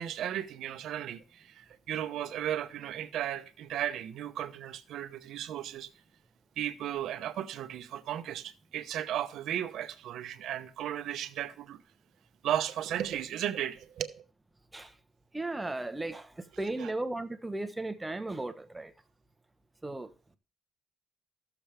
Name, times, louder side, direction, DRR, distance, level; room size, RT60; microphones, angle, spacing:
voice 1, 0.0-5.9 6.6-11.8 12.4-14.2 16.8-16.9, right 11 dB, 80° right, 0.8 m, -35 dB
voice 2, 15.3-18.9 19.8-20.4, right 2 dB, 15° right, 0.9 m, -36 dB
13.5 x 6.9 x 3.4 m
cardioid pair, 90°, 0 cm